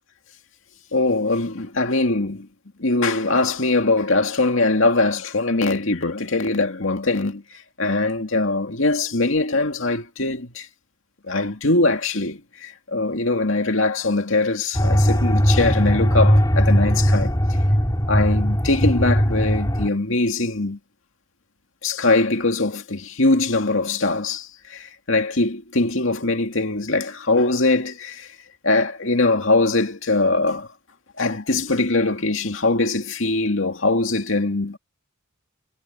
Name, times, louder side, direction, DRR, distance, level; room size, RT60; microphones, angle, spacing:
voice 1, 0.9-2.5 2.8-7.4 7.8-10.7 11.3-17.3 18.1-20.8 21.8-28.3 28.6-30.7 31.2-34.8, left 2 dB, 65° left, 2.4 m, -22 dB
sound 1, 14.8-19.9, equal, 20° left, 2.3 m, -19 dB
head